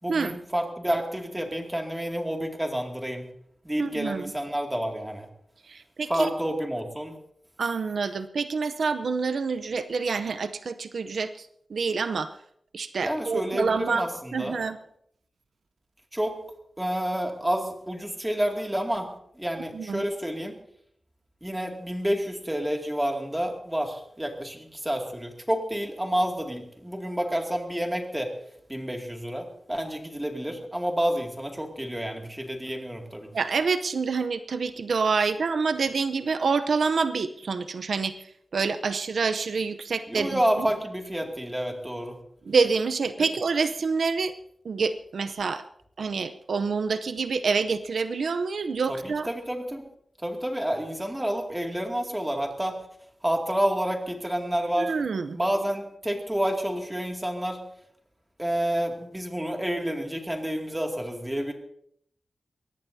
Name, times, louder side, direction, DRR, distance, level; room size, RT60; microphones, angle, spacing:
voice 1, 0.0-3.2 3.6-5.3 6.1-7.1 13.0-14.6 16.1-16.4 16.8-20.5 21.4-28.3 28.7-33.3 40.1-42.2 43.2-43.3 48.9-49.8 50.2-52.8 53.2-54.9 55.3-57.6 58.4-61.5, equal, 10° right, 2 dB, 2.3 m, -29 dB
voice 2, 3.8-4.3 5.7-6.3 7.6-12.3 12.7-14.0 14.3-14.8 19.7-20.0 33.3-38.1 38.5-40.4 42.5-44.3 44.6-45.6 46.0-49.3 54.8-55.4, right 4 dB, 75° right, 11 dB, 0.7 m, -27 dB
23.0 x 18.0 x 2.7 m, 0.70 s
wide cardioid pair, 125°, 0 cm